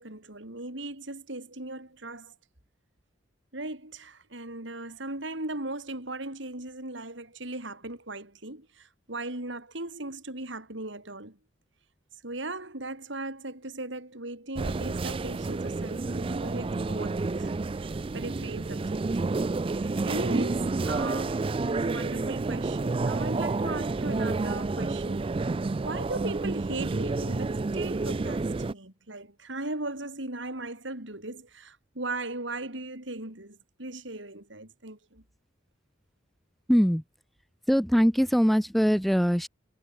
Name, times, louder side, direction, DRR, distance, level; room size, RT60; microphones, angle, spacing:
voice 1, 0.0-2.3 3.5-11.4 12.2-19.3 19.7-25.5 25.8-35.2, right 2 dB, 70° right, 4.8 m, -38 dB
sound 1, 14.6-28.7, right 3 dB, 30° right, 0.4 m, -30 dB
voice 2, 36.7-37.0 37.7-39.5, equal, ahead, 1.0 m, -22 dB
head